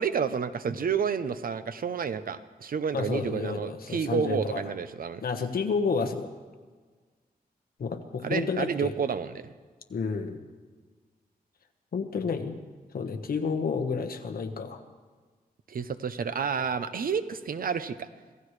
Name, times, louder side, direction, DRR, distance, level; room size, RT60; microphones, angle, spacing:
voice 1, 0.0-5.2 8.2-9.5 15.7-18.1, right 6 dB, 65° right, 11 dB, 0.7 m, -30 dB
voice 2, 2.9-4.6 5.2-6.3 7.8-8.9 9.9-10.4 11.9-12.6 12.9-14.8, left 5 dB, 70° left, 6 dB, 1.3 m, -30 dB
26.0 x 16.5 x 3.3 m, 1.5 s
wide cardioid pair, 170°, 16 cm